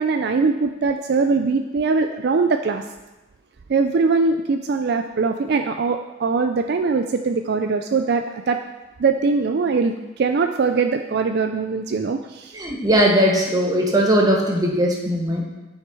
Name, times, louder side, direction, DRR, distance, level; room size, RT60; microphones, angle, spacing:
voice 1, 0.0-2.8 3.7-8.6 9.0-12.6, right 4 dB, 55° right, 6 dB, 0.4 m, -21 dB
voice 2, 12.5-15.4, equal, 20° right, 0 dB, 1.4 m, -19 dB
8.9 x 6.4 x 4.7 m, 1.1 s
head